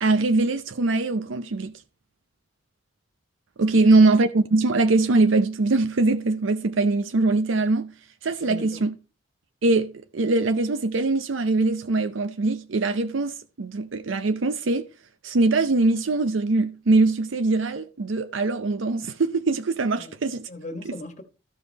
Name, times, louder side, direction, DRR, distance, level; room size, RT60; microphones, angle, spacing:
voice 1, 0.0-1.7 3.6-7.9 8.2-8.9 9.6-14.8 15.2-20.5 20.9-21.0, right 3 dB, 85° right, 0.6 m, -22 dB
voice 2, 8.4-8.9 20.0-20.1 20.5-21.2, left 2 dB, 40° left, 1.3 m, -38 dB
13.5 x 5.3 x 4.1 m
head